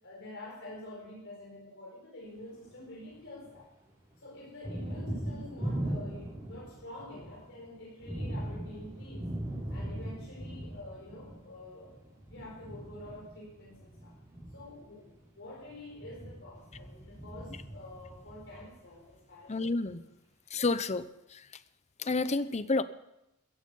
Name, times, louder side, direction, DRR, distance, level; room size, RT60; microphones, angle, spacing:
voice 1, 0.0-3.7 4.2-9.3 9.7-11.9 12.2-14.1 14.5-19.5, left 1 dB, 60° left, -4 dB, 4.9 m, -47 dB
Thunder, 2.4-3.6 3.9-19.1, right 1 dB, 15° right, 6.1 m, -40 dB
voice 2, 19.5-20.0 20.5-21.6 22.0-22.8, left 3 dB, 30° left, 14 dB, 0.7 m, -30 dB
15.0 x 15.0 x 5.5 m, 0.89 s
head